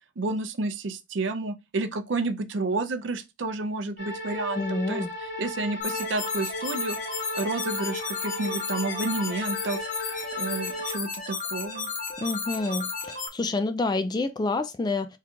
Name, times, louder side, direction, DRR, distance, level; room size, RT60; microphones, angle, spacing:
voice 1, 0.2-7.0 7.3-9.8 10.4-11.9, right 3 dB, 70° right, 0.5 m, -30 dB
sound 1, 4.0-11.0, left 1 dB, 75° left, 1.9 m, -35 dB
voice 2, 4.6-5.1 12.2-15.2, left 3 dB, 20° left, 0.3 m, -28 dB
sound 2, 5.8-13.3, left 5 dB, 40° left, 0.9 m, -33 dB
3.7 x 2.4 x 4.4 m
head